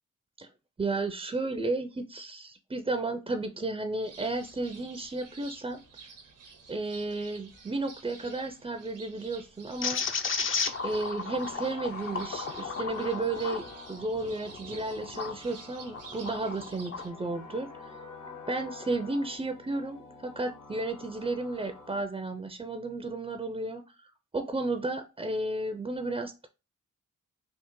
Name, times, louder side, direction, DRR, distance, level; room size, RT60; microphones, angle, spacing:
voice 1, 0.8-5.8 6.7-10.1 10.8-18.0 18.5-26.5, right 2 dB, 20° right, 7 dB, 0.4 m, -33 dB
sound 1, 4.0-17.1, right 5 dB, 85° right, 0.8 m, -50 dB
sound 2, 9.8-15.4 15.9-17.1, left 5 dB, 40° left, 0.5 m, -34 dB
sound 3, 11.4-22.0, left 3 dB, 75° left, 1.0 m, -48 dB
3.4 x 2.0 x 3.0 m, 0.30 s
supercardioid pair, 40°, 32 cm